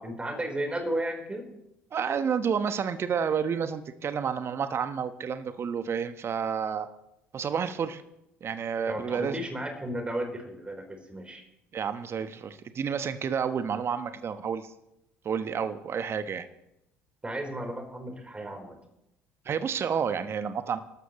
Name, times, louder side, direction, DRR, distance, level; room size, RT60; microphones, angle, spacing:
voice 1, 0.0-1.4 8.9-11.4 17.2-18.8, right 1 dB, 15° right, 4 dB, 4.0 m, -34 dB
voice 2, 1.9-6.9 7.3-8.0 8.4-9.4 11.7-14.7 15.2-16.5 19.4-20.8, right 7 dB, 40° right, 11 dB, 1.1 m, -30 dB
28.5 x 13.0 x 3.1 m, 0.84 s
figure-of-eight pair, 55°, 7 cm